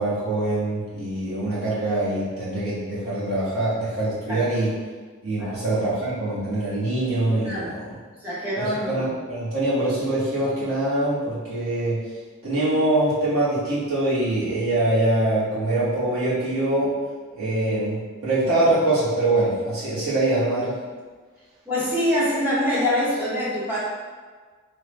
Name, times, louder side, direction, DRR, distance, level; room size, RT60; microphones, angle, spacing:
voice 1, 0.0-4.7 5.2-7.9 8.8-12.0 12.4-16.9 17.4-20.7, right 1 dB, 90° right, -11 dB, 1.2 m, -24 dB
voice 2, 7.4-7.7 8.2-9.0 21.7-23.8, left 1 dB, 10° right, -9 dB, 0.9 m, -24 dB
3.3 x 2.1 x 3.2 m, 1.5 s
head